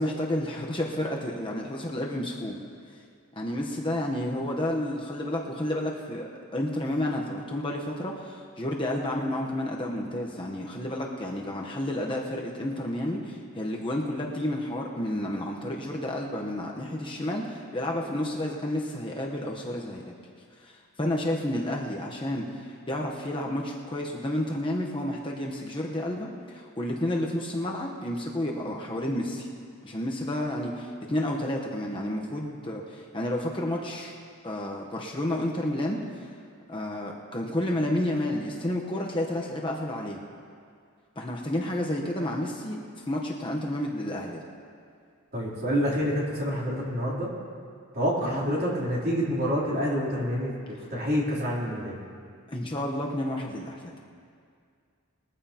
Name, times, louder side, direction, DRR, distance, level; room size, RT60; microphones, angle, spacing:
voice 1, 0.0-2.6 3.4-20.0 20.6-26.3 26.5-29.5 29.8-34.1 34.4-36.3 36.7-40.2 41.2-42.8 43.1-44.4 48.2-48.4 52.5-54.0, left 1 dB, 25° left, -1 dB, 0.9 m, -31 dB
voice 2, 45.3-47.3 47.9-50.5 50.9-52.0, equal, 40° right, -5 dB, 3.3 m, -27 dB
21.5 x 14.5 x 2.9 m, 2.2 s
head